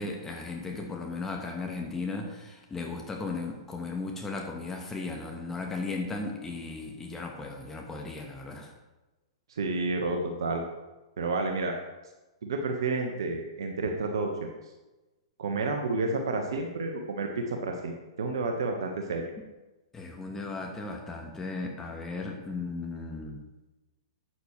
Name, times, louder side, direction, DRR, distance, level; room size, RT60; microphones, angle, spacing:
voice 1, 0.0-8.7 19.9-23.4, left 3 dB, 10° left, 1 dB, 1.3 m, -36 dB
voice 2, 9.5-10.6 11.2-11.8 12.4-14.5 15.4-19.3, right 3 dB, 60° right, 3 dB, 1.3 m, -30 dB
13.0 x 8.9 x 3.3 m, 1.1 s
figure-of-eight pair, 110°, 3 cm